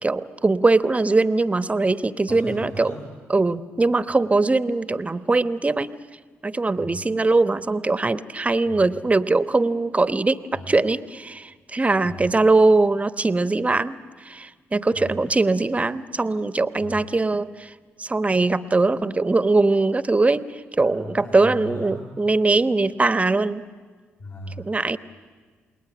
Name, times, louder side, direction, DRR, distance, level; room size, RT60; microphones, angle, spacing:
voice 1, 0.0-2.9 3.3-5.9 6.4-17.7 18.0-23.6 24.6-25.0, right 3 dB, 25° right, 13 dB, 1.1 m, -21 dB
voice 2, 2.3-3.0 6.8-7.0 8.6-8.9 10.5-10.7 12.0-12.3 14.9-15.2 16.8-17.0 20.8-22.1 24.2-24.7, left 1 dB, 55° left, -3 dB, 6.3 m, -37 dB
29.0 x 20.0 x 9.7 m, 1.5 s
hypercardioid pair, 45°, 6 cm